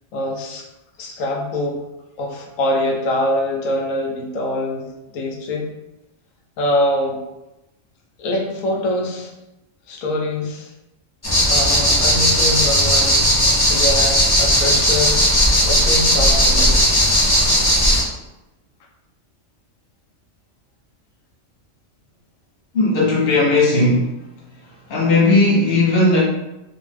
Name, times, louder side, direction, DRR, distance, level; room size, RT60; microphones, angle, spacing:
voice 1, 0.1-0.7 1.0-1.8 2.2-4.9 5.1-5.7 6.6-7.2 8.2-9.3 9.9-10.7 11.5-15.2 15.7-17.0, left 1 dB, 90° left, 1 dB, 1.0 m, -24 dB
sound 1, 11.2-18.0, equal, 30° left, 0.4 m, -16 dB
voice 2, 22.7-24.1 24.9-26.2, left 2 dB, 50° left, -5 dB, 0.9 m, -16 dB
2.7 x 2.0 x 3.2 m, 0.96 s
omnidirectional pair, 1.3 m